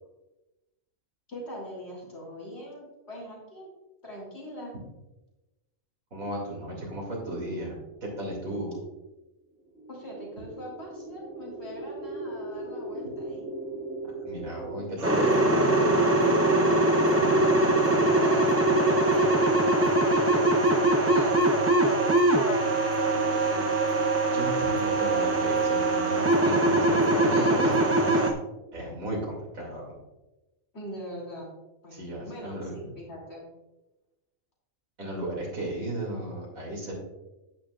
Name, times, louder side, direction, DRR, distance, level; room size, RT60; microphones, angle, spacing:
voice 1, 1.3-3.7 4.0-4.7 9.9-13.4 17.3-22.8 23.2-23.6 30.7-31.5 31.8-33.5, left 1 dB, 50° left, -3 dB, 3.3 m, -42 dB
voice 2, 6.1-8.8 14.0-16.0 24.3-28.4 28.7-29.9 31.9-32.7 35.0-36.9, right 1 dB, 90° right, -3 dB, 3.0 m, -35 dB
sound 1, 9.6-17.8, right 2 dB, 70° left, 2.0 m, -40 dB
sound 2, 15.0-28.3, right 2 dB, 15° right, 0.5 m, -22 dB
sound 3, 15.0-28.3, right 4 dB, 65° right, 1.3 m, -44 dB
10.5 x 9.0 x 2.4 m, 1.0 s
omnidirectional pair, 1.4 m